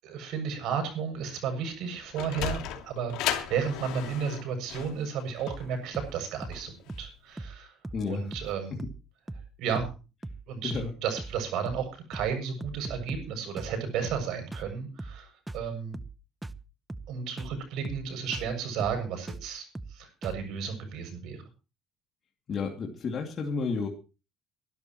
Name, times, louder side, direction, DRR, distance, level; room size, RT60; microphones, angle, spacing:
voice 1, 0.0-3.1 3.5-6.7 7.0-7.8 8.1-8.8 9.6-9.9 10.5-10.7 11.0-16.0 17.1-21.4, right 7 dB, 70° right, 5 dB, 7.2 m, -33 dB
Sliding door, 1.8-7.0, left 10 dB, 85° left, 2.8 m, -35 dB
sound 1, 5.5-5.7 5.9-6.2 6.4-6.6 6.9-7.1 7.4-7.6 7.8-8.1 8.3-8.5 8.8-9.0 9.3-9.5 9.8-10.0 10.2-10.4 10.7-10.9 11.2-11.4 11.7-11.9 12.1-12.3 12.6-13.3 13.6-13.8 14.0-14.3 14.5-14.7 15.0-15.2 15.5-15.7 15.9-16.2 16.4-16.6 16.9-17.1 17.4-17.6 17.8-18.1 18.3-18.5 18.8-19.0 19.3-19.5 19.7-20.0 20.2-20.4, right 2 dB, 5° right, 0.7 m, -40 dB
voice 2, 7.9-8.3 8.7-8.8 10.6-10.9 22.5-23.9, left 4 dB, 35° left, 0 dB, 2.6 m, -31 dB
24.0 x 12.5 x 3.1 m, 0.33 s
cardioid pair, 155°, 0 cm